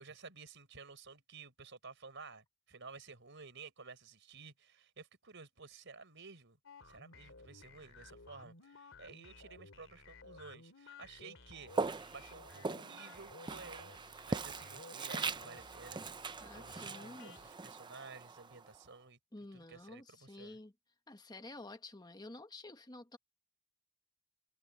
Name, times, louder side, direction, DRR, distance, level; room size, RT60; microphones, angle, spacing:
voice 1, 0.0-6.6 6.8-11.7 12.1-19.2 19.7-20.6, right 4 dB, 60° right, 4.9 m, -53 dB
sound 1, 6.6-17.5, left 3 dB, 65° left, 3.4 m, -56 dB
Walk footsteps, 11.7-18.8, right 4 dB, 20° right, 0.5 m, -41 dB
voice 2, 16.4-17.4 19.3-20.7 21.1-23.2, left 2 dB, 20° left, 1.3 m, -51 dB
head